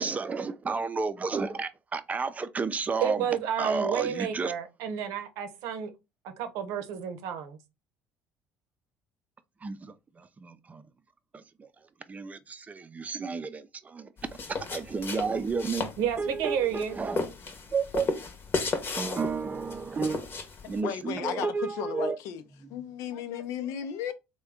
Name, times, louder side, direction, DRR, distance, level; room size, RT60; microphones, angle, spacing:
voice 1, 0.0-3.2 3.6-4.5 9.6-10.8 11.3-11.4 12.1-14.1 14.7-15.9 16.2-17.2 17.7-18.1 19.0-20.2 20.7-22.2, right 4 dB, 25° right, 0.5 m, -32 dB
voice 2, 3.0-5.9 6.4-7.6 16.0-17.0, right 8 dB, 75° right, 0.7 m, -31 dB
sound 1, 14.2-20.8, left 4 dB, 40° left, 0.9 m, -35 dB
voice 3, 20.6-22.4 22.7-24.1, left 9 dB, 70° left, 0.6 m, -35 dB
3.3 x 2.2 x 3.5 m
supercardioid pair, 80°, 6 cm